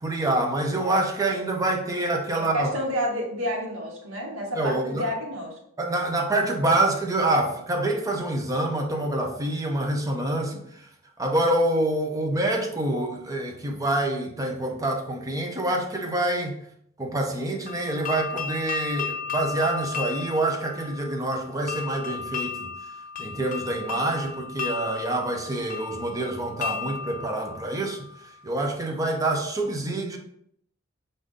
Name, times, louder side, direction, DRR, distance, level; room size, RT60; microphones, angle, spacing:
voice 1, 0.0-2.7 4.5-5.1 5.8-10.9 11.2-16.6 17.0-22.7 23.2-28.1 28.4-30.2, right 2 dB, 15° right, 2 dB, 0.7 m, -26 dB
voice 2, 2.3-5.6, equal, 80° right, -1 dB, 1.4 m, -29 dB
sound 1, 17.7-28.5, left 6 dB, 40° left, 0.4 m, -35 dB
5.0 x 2.7 x 3.6 m, 0.71 s
head